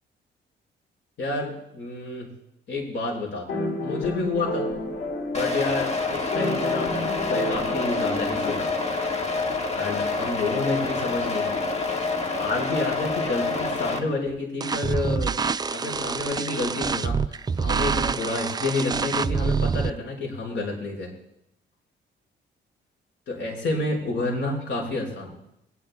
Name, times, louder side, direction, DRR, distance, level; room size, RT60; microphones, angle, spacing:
voice 1, 1.2-2.3 2.7-4.7 5.3-6.9 7.2-8.8 9.8-11.6 12.4-15.4 15.7-17.2 17.6-21.1 23.3-25.4, left 2 dB, 65° left, -1 dB, 5.3 m, -29 dB
sound 1, 3.5-9.1, left 1 dB, 85° left, 3.6 m, -31 dB
sound 2, 5.3-14.0, left 3 dB, 35° left, 1.7 m, -27 dB
sound 3, 14.6-19.9, right 5 dB, 20° right, 0.4 m, -26 dB
21.0 x 10.5 x 2.3 m, 0.80 s
cardioid pair, 90°, 20 cm